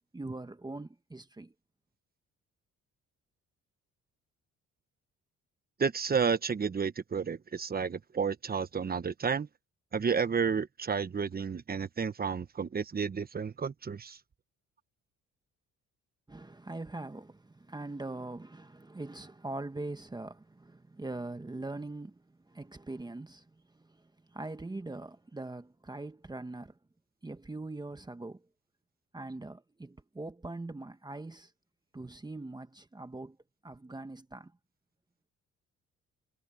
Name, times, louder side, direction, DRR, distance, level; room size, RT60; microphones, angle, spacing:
voice 1, 0.1-1.5 16.3-26.8 27.2-28.5 29.1-31.5 31.9-33.4 33.6-34.5, right 2 dB, 15° right, 1.1 m, -42 dB
voice 2, 5.8-9.5 9.9-14.2, right 6 dB, 30° right, 1.1 m, -31 dB
cardioid pair, 90°, 30 cm